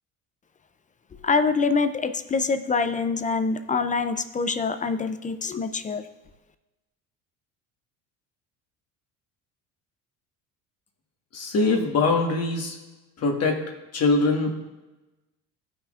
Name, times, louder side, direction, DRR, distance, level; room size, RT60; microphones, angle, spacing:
voice 1, 1.2-6.0, left 4 dB, 20° left, 10 dB, 0.4 m, -25 dB
voice 2, 11.3-12.7 13.2-13.6 13.9-14.5, left 3 dB, 40° left, 0 dB, 1.5 m, -22 dB
15.0 x 5.7 x 2.5 m, 1.1 s
supercardioid pair, 95°, 37 cm